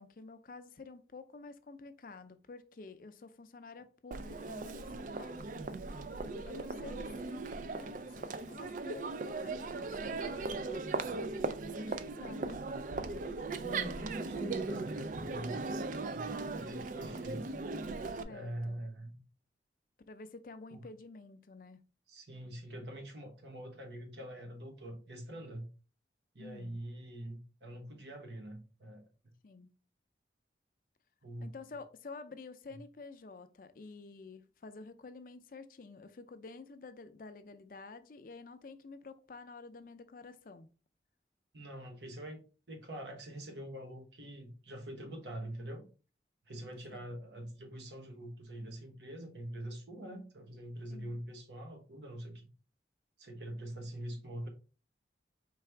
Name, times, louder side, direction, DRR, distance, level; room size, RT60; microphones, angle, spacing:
voice 1, 0.0-5.5 6.4-7.5 7.7-11.1 11.7-12.7 18.2-18.8 20.1-21.8 26.4-26.8 29.4-29.7 31.4-40.7 46.9-47.2 50.9-51.2, left 3 dB, 50° left, 0.4 m, -50 dB
Crowd, 4.1-18.2, right 3 dB, 45° right, 0.3 m, -38 dB
voice 2, 13.5-15.7 16.0-17.5 18.3-19.2 20.7-20.8 22.1-25.7 26.3-29.0 31.2-31.5 32.7-32.8 41.5-42.4 42.7-45.9 46.5-52.5 53.2-54.5, right 1 dB, 80° right, 1.1 m, -44 dB
4.7 x 3.4 x 3.3 m
head